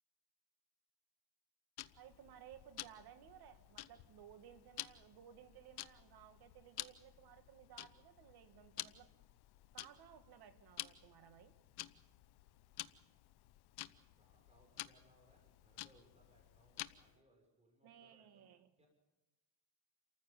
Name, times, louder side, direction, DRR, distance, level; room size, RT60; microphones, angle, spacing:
Tick-tock, 1.8-17.2, left 15 dB, 75° left, 0.9 m, -52 dB
voice 1, 2.0-9.1 9.7-11.6 17.8-18.7, right 10 dB, 70° right, 1.9 m, -59 dB
voice 2, 14.2-18.5 18.8-18.9, equal, 15° right, 6.5 m, -70 dB
28.5 x 14.5 x 7.2 m
cardioid pair, 120°, 39 cm